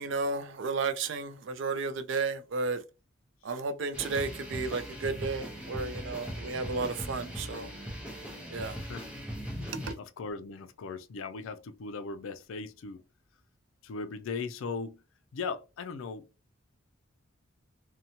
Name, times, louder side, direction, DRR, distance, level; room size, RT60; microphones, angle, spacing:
voice 1, 0.0-2.8 3.4-7.7 8.5-8.8 9.7-10.0, right 4 dB, 65° right, 0.4 m, -33 dB
sound 1, 3.9-9.9, equal, 5° right, 0.7 m, -39 dB
voice 2, 8.8-9.2 10.0-13.0 13.8-15.0 15.3-16.3, left 4 dB, 75° left, 0.4 m, -38 dB
2.7 x 2.2 x 2.8 m
head